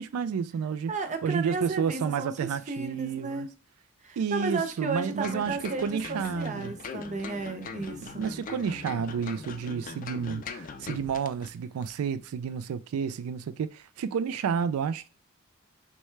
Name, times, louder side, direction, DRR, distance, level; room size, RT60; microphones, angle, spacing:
voice 1, 0.0-0.9 1.2-3.5 4.2-6.7 8.1-15.1, right 6 dB, 80° right, 0.3 m, -30 dB
voice 2, 0.9-3.5 4.0-8.3, right 4 dB, 35° right, 0.6 m, -34 dB
sound 1, 5.2-11.5 11.8-11.9, left 4 dB, 40° left, 0.4 m, -41 dB
6.3 x 2.2 x 3.1 m
head